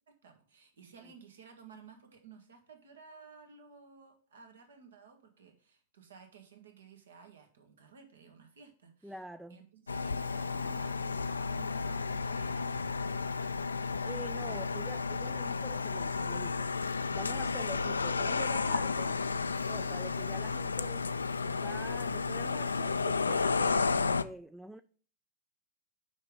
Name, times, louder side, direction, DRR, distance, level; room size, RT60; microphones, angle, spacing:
voice 1, 0.1-9.2 9.5-13.6 14.4-14.6 19.7-20.0, right 5 dB, 70° right, 1.6 m, -55 dB
voice 2, 9.0-9.6 14.0-16.7 17.1-19.2 19.7-21.1 21.5-24.8, right 1 dB, 5° right, 0.3 m, -46 dB
sound 1, 9.9-24.2, left 4 dB, 85° left, 0.3 m, -32 dB
6.3 x 5.3 x 5.1 m
figure-of-eight pair, 100°, 0 cm